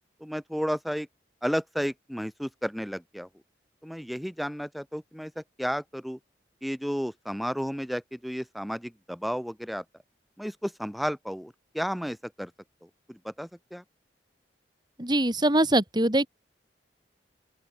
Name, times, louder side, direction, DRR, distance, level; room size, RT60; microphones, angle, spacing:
voice 1, 0.2-1.1 1.4-3.3 3.8-6.2 6.6-9.8 10.4-12.5 13.1-13.8, equal, ahead, 2.1 m, -32 dB
voice 2, 15.0-16.3, right 1 dB, 25° right, 2.4 m, -23 dB
open air
head